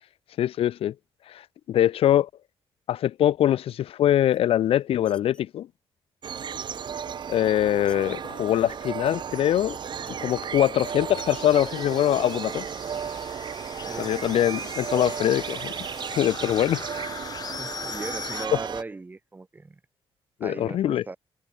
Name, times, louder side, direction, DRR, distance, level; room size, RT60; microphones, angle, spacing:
voice 1, 0.4-0.9 1.3-2.3 2.9-5.7 7.3-9.7 10.2-12.6 14.0-15.7 16.1-16.8 20.4-21.0, left 11 dB, 70° left, 0.6 m, -23 dB
sound 1, 4.3-5.4 7.1-8.0 8.5-9.1 9.5-10.4 10.9-11.6 12.0-12.3 12.7-12.8 13.1-13.3 13.6-14.6 15.2-15.5, left 1 dB, 10° left, 3.0 m, -53 dB
sound 2, 6.2-18.8, right 7 dB, 50° right, 3.1 m, -34 dB
sound 3, 9.4-9.5 9.7-9.9 11.2-18.5, left 6 dB, 40° left, 5.3 m, -40 dB
voice 2, 13.9-14.4 16.2-16.4 17.4-19.8 20.4-21.2, right 3 dB, 20° right, 1.6 m, -39 dB
cardioid pair, 140°, 10 cm